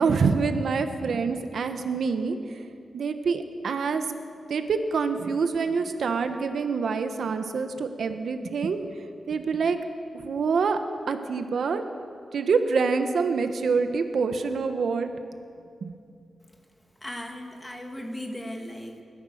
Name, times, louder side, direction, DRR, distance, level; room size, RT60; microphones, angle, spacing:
voice 1, 0.0-2.6 2.9-4.1 4.5-8.8 9.3-9.8 10.1-10.8 11.1-11.8 12.3-15.1 15.8-15.9, right 5 dB, 70° right, 7 dB, 1.2 m, -26 dB
voice 2, 17.0-19.0, left 1 dB, 10° left, 2 dB, 2.3 m, -37 dB
29.0 x 14.0 x 6.6 m, 2.5 s
wide cardioid pair, 130°, 0 cm